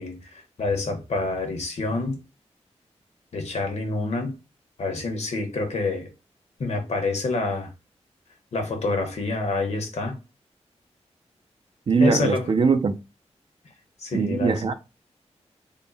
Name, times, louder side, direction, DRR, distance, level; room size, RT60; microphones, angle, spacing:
voice 1, 0.0-2.2 3.3-4.4 4.8-6.1 6.6-7.7 8.5-10.2 12.0-12.5 14.0-14.7, left 3 dB, 70° left, 1.1 m, -27 dB
voice 2, 11.9-13.0 14.1-14.7, right 4 dB, 50° right, 0.4 m, -21 dB
3.7 x 2.1 x 3.9 m
wide cardioid pair, 165°, 12 cm